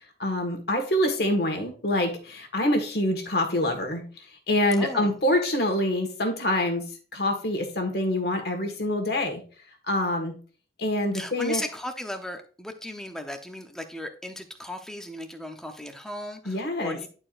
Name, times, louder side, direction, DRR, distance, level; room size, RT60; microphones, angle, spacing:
voice 1, 0.2-4.1 4.5-9.4 9.8-10.4 10.8-11.6 16.4-17.0, left 1 dB, 65° left, 4 dB, 1.5 m, -26 dB
voice 2, 4.8-5.1 11.1-17.1, left 1 dB, 5° left, 5 dB, 0.8 m, -36 dB
10.5 x 4.5 x 2.5 m, 0.39 s
head